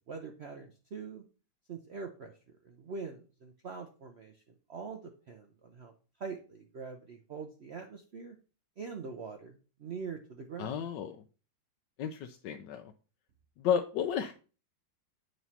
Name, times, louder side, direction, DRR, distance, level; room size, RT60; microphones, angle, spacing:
voice 1, 0.1-1.2 1.7-2.4 2.6-4.4 4.7-5.9 6.2-8.4 8.8-10.8, right 5 dB, 70° right, 4 dB, 0.6 m, -43 dB
voice 2, 10.6-11.2 12.0-12.9 13.6-14.3, left 8 dB, 75° left, 5 dB, 1.2 m, -32 dB
8.0 x 3.1 x 5.5 m, 0.36 s
omnidirectional pair, 2.0 m